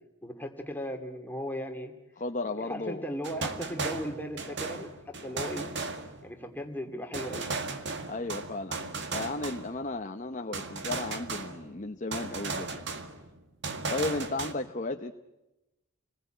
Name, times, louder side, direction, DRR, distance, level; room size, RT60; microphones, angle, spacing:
voice 1, 0.2-1.9 2.7-4.9 5.2-5.7 6.2-7.5, equal, 10° left, 4 dB, 2.4 m, -37 dB
voice 2, 2.2-3.0 8.1-12.9 13.9-15.1, left 2 dB, 35° left, 6 dB, 0.9 m, -34 dB
sound 1, 3.2-6.5 7.1-10.0 10.5-11.8 12.1-14.5, right 4 dB, 55° right, 2.0 m, -36 dB
29.5 x 21.0 x 9.0 m, 1.0 s
head